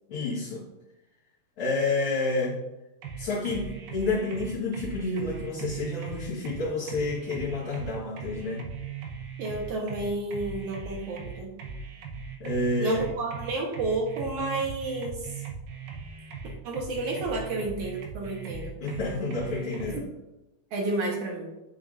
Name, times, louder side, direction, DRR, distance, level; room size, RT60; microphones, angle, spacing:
voice 1, 0.1-0.6 1.6-2.6 3.2-8.6 12.4-13.0 18.8-20.0, left 3 dB, 50° left, -9 dB, 1.9 m, -29 dB
sound 1, 3.0-20.0, right 6 dB, 80° right, 2.8 m, -39 dB
voice 2, 9.4-11.5 12.8-15.4 16.6-18.8 19.8-20.1 20.7-21.5, right 2 dB, 65° right, -1 dB, 2.2 m, -31 dB
9.6 x 6.8 x 2.5 m, 0.96 s
omnidirectional pair, 4.3 m